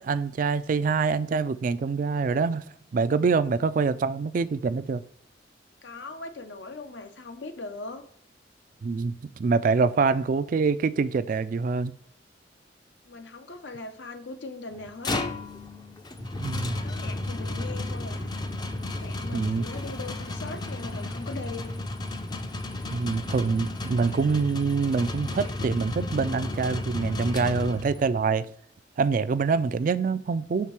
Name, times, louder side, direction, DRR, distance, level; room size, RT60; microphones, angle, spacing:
voice 1, 0.0-2.6 2.9-5.0 8.8-9.1 9.4-11.9 16.3-16.8 19.3-19.6 22.8-28.5 29.0-30.7, right 4 dB, 45° right, 0.3 m, -25 dB
voice 2, 5.8-8.0 13.0-15.3 16.8-18.3 19.0-21.8, left 3 dB, 75° left, 0.8 m, -39 dB
sound 1, 14.7-28.2, left 2 dB, 25° left, 0.5 m, -33 dB
5.8 x 3.7 x 4.6 m
head